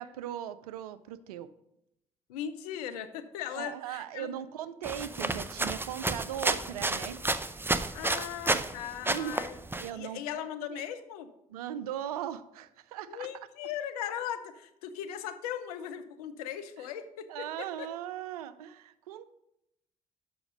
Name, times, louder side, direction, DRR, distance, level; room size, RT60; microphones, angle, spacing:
voice 1, 0.0-1.5 3.5-7.2 8.1-8.2 8.5-8.8 9.1-9.5 9.8-10.5 11.5-13.3 16.8-16.9 17.3-19.3, right 11 dB, 85° right, 14 dB, 0.4 m, -39 dB
voice 2, 2.3-4.3 7.9-9.6 9.9-11.3 13.1-17.9, left 10 dB, 80° left, 10 dB, 0.6 m, -38 dB
sound 1, 4.8-8.7 9.0-9.9, right 2 dB, 10° right, 0.5 m, -31 dB
7.0 x 5.8 x 5.0 m, 0.84 s
hypercardioid pair, 50°, 19 cm